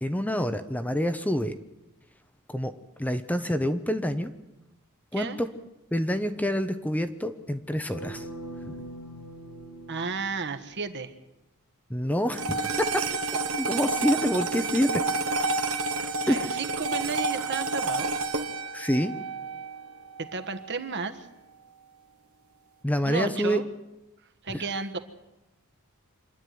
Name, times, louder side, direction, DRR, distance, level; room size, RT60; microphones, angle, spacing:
voice 1, 0.0-1.5 2.5-2.7 3.0-4.3 5.1-5.5 5.9-8.3 8.6-8.7 11.9-12.9 13.6-15.0 16.3-16.4 18.7-19.1 22.8-23.6 24.5-24.6, equal, 5° left, 9 dB, 0.8 m, -27 dB
voice 2, 5.1-5.4 9.9-11.1 16.3-18.1 20.2-21.2 23.0-23.7 24.4-25.0, right 4 dB, 55° right, 8 dB, 1.5 m, -33 dB
sound 1, 7.9-11.0, right 1 dB, 85° left, 2.8 m, -42 dB
sound 2, 12.3-20.8, right 3 dB, 75° right, 1.6 m, -30 dB
26.0 x 11.0 x 9.5 m, 0.97 s
head